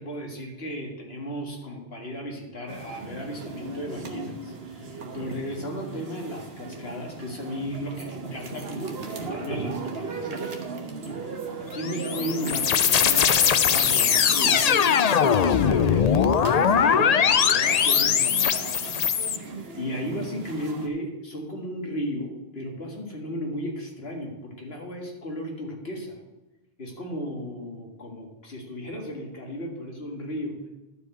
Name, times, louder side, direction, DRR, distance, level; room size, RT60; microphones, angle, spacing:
voice 1, 0.0-10.4 11.1-11.2 11.6-14.7 15.1-18.7 19.8-26.2 26.8-30.6, equal, 75° left, 0 dB, 2.2 m, -35 dB
sound 1, 2.7-20.9, right 4 dB, 75° right, 1.4 m, -37 dB
sound 2, 11.7-19.4, left 7 dB, 50° left, 0.5 m, -21 dB
11.5 x 4.9 x 7.9 m, 1.0 s
omnidirectional pair, 1.0 m